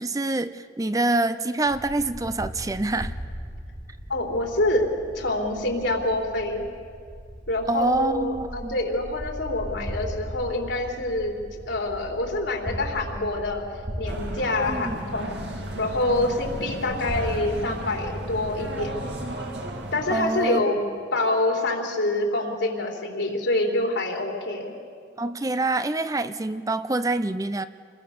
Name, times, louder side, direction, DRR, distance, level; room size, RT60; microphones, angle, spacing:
voice 1, 0.0-3.1 7.7-8.8 14.7-15.0 20.1-20.6 25.2-27.7, right 2 dB, 20° right, 12 dB, 0.5 m, -26 dB
sound 1, 1.6-19.4, equal, 40° right, 4.3 m, -38 dB
voice 2, 4.1-4.9 5.1-6.6 7.5-11.4 11.7-13.6 14.0-15.4 15.8-19.1 19.9-20.8 21.1-24.7, left 2 dB, 90° left, 1 dB, 3.6 m, -26 dB
sound 2, 14.1-20.2, right 1 dB, 70° right, 2.5 m, -35 dB
28.0 x 21.5 x 6.7 m, 2.2 s
head